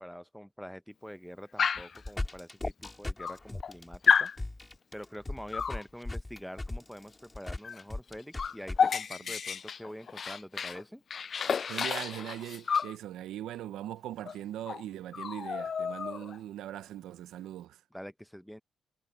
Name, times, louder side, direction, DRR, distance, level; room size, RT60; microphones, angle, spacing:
voice 1, 0.0-4.3 4.9-11.0 17.9-18.6, equal, ahead, 0.8 m, -45 dB
Dog, 1.6-2.0 2.8-2.9 3.2-3.7 4.1-4.4 5.5-5.8 7.6-7.8 8.1-10.8 11.1-13.0 14.2-14.4 14.7-14.8 15.1-16.4, left 6 dB, 55° left, 0.3 m, -30 dB
sound 1, 1.7-8.8, left 2 dB, 20° left, 2.5 m, -38 dB
voice 2, 11.4-17.8, right 12 dB, 85° right, 0.8 m, -40 dB
cardioid pair, 70°, 0 cm